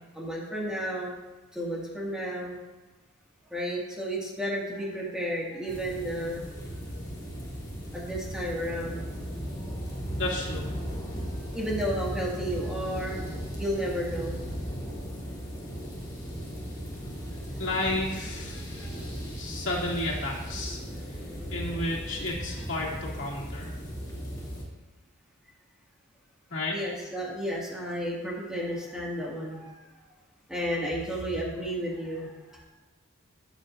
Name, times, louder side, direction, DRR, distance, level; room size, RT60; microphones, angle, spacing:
voice 1, 0.1-1.1 1.5-2.6 3.5-6.4 7.9-9.1 10.8-10.9 11.5-13.2 13.6-14.4 18.5-19.0 20.6-22.0 26.7-29.8 30.5-32.6, equal, 5° right, -5 dB, 2.1 m, -33 dB
sound 1, 5.7-24.6, equal, 20° left, 2.8 m, -37 dB
voice 2, 10.2-10.7 17.6-19.0 19.4-20.8 21.5-23.7 26.5-26.8, left 2 dB, 60° left, -4 dB, 2.7 m, -32 dB
20.5 x 8.2 x 2.7 m, 1.2 s
head